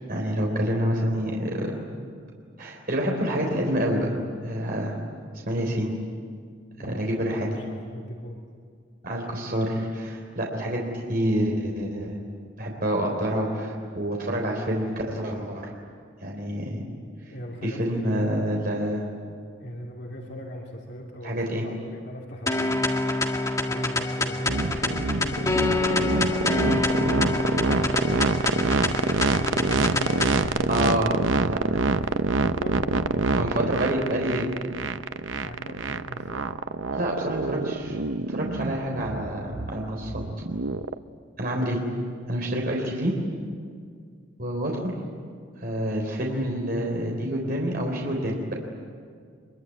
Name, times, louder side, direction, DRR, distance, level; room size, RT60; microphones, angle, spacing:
voice 1, 0.1-1.7 2.6-4.1 4.4-5.0 5.5-5.9 6.8-7.6 9.0-10.8 11.1-12.2 12.6-15.7 16.2-16.8 17.6-19.0 21.2-21.6 30.7-31.1 31.4-31.8 33.4-34.5 36.9-40.2 41.4-41.8 42.3-43.2 44.4-44.9 45.6-48.5, equal, 50° right, -1 dB, 3.6 m, -27 dB
voice 2, 6.8-8.4 17.3-18.2 19.6-22.9 23.7-28.5 28.8-30.9 32.0-34.0 35.4-36.4, left 1 dB, 60° left, -2 dB, 2.9 m, -39 dB
sound 1, 22.5-30.5, left 2 dB, 15° left, 1.8 m, -26 dB
sound 2, 24.5-41.0, right 3 dB, 80° right, 0.8 m, -26 dB
24.5 x 23.5 x 9.6 m, 2.1 s
head